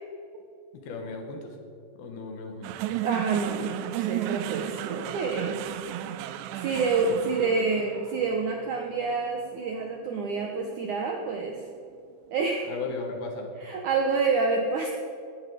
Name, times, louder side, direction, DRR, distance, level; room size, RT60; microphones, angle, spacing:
voice 1, 0.8-1.6 2.0-2.7 7.4-7.5 12.7-13.5, left 3 dB, 65° left, 3 dB, 3.5 m, -36 dB
sound 1, 2.6-11.1, right 12 dB, 90° right, 2.8 m, -34 dB
voice 2, 3.0-5.6 6.5-11.6 12.3-12.7 13.6-14.9, right 4 dB, 70° right, 3 dB, 1.9 m, -28 dB
18.0 x 13.5 x 5.1 m, 2.5 s
omnidirectional pair, 4.9 m